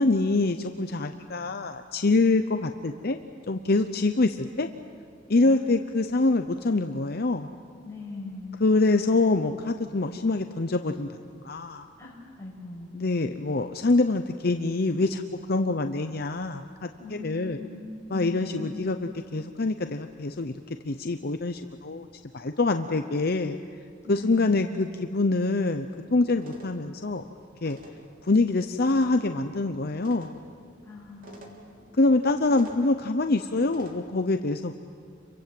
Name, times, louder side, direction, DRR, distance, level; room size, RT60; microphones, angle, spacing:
voice 1, 0.0-3.2 3.5-4.7 5.3-7.5 8.6-11.1 11.4-11.9 12.9-15.2 15.5-17.6 18.1-20.5 20.8-22.1 22.3-23.6 24.1-27.2 27.6-27.8 28.2-30.4 32.0-34.7, left 3 dB, 55° left, 7 dB, 0.8 m, -25 dB
voice 2, 5.4-5.8 7.8-8.6 12.0-12.9 17.0-18.8 24.0-24.7 30.8-31.6, left 3 dB, 15° left, -4 dB, 7.6 m, -40 dB
sound 1, 26.4-34.0, equal, 50° right, 3.6 m, -51 dB
29.5 x 24.0 x 7.8 m, 2.2 s
head